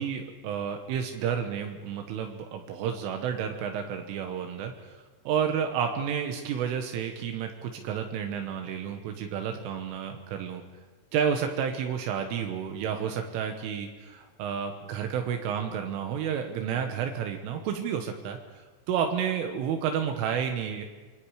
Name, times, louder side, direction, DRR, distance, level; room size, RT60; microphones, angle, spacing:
voice 1, 0.0-10.6 11.1-20.9, right 7 dB, 80° right, 4 dB, 3.8 m, -31 dB
26.5 x 22.5 x 5.0 m, 1.3 s
omnidirectional pair, 5.7 m